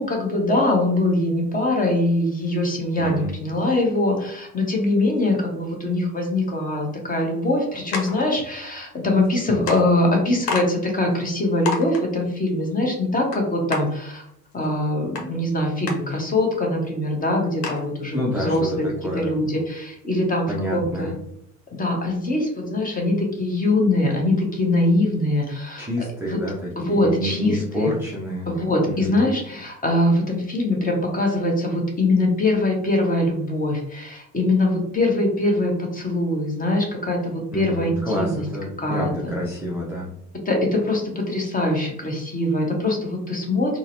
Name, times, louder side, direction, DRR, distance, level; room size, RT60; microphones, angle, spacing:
voice 1, 0.0-14.3 14.5-18.9 19.1-21.1 21.8-25.9 26.3-26.4 26.8-27.9 28.5-38.4 38.8-39.1 40.5-43.8, left 2 dB, 15° left, 1 dB, 0.9 m, -22 dB
voice 2, 3.0-3.3 18.1-19.3 20.5-21.1 25.8-28.5 28.9-29.2 37.5-40.1, equal, 5° right, -7 dB, 0.6 m, -28 dB
sound 1, 7.9-8.2 9.2-9.3 9.7-9.8 10.5-10.7 11.1-11.2 11.7-12.0 13.3-13.4 13.7-13.8 15.2-15.3 15.9-16.0 16.6-16.7 16.9-17.0 17.6-17.9, left 4 dB, 70° left, 0.9 m, -27 dB
3.9 x 2.0 x 2.6 m, 0.75 s
figure-of-eight pair, 70°, 49 cm